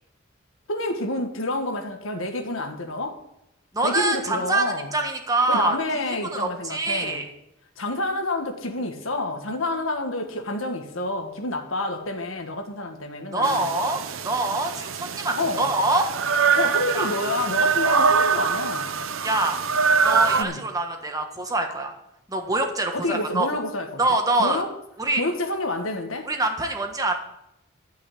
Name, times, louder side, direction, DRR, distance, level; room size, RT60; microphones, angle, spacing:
voice 1, 0.7-3.2 3.8-4.9 5.5-7.2 7.8-13.7 15.4-15.7 16.5-19.0 20.4-20.7 22.9-24.7 25.2-26.3, left 2 dB, 90° left, 1.7 m, -28 dB
voice 2, 3.7-5.8 6.3-7.2 13.3-16.1 16.9-17.1 19.2-19.6 20.0-21.9 22.3-23.5 24.0-24.6 25.0-25.2 26.2-27.2, right 2 dB, 20° right, 1.5 m, -25 dB
sound 1, 13.4-20.4, right 5 dB, 85° right, 0.7 m, -24 dB
12.0 x 5.7 x 8.3 m
head